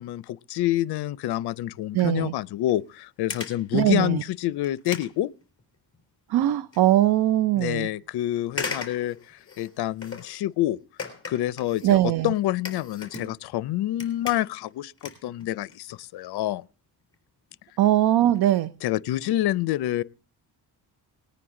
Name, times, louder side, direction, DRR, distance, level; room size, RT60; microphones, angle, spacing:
voice 1, 0.0-5.3 7.6-10.8 11.3-12.0 12.2-16.6 18.8-20.0, left 14 dB, 70° left, 0.6 m, -27 dB
voice 2, 1.9-2.3 3.7-4.2 6.3-7.9 11.8-12.3 17.8-18.7, right 13 dB, 70° right, 0.6 m, -21 dB
sound 1, 2.7-2.9 3.3-3.7 4.2-4.3 4.6-6.0 6.3-6.8 7.3-7.4 8.5-10.4 11.0-13.6 13.9-14.7 15.0-16.0 16.2-16.4 17.1-17.2 17.5-17.6 17.8-17.9 18.2-18.4 18.9-19.0 19.2-19.3, left 4 dB, 30° left, 3.7 m, -38 dB
19.0 x 9.5 x 3.7 m
cardioid pair, 140°, 40 cm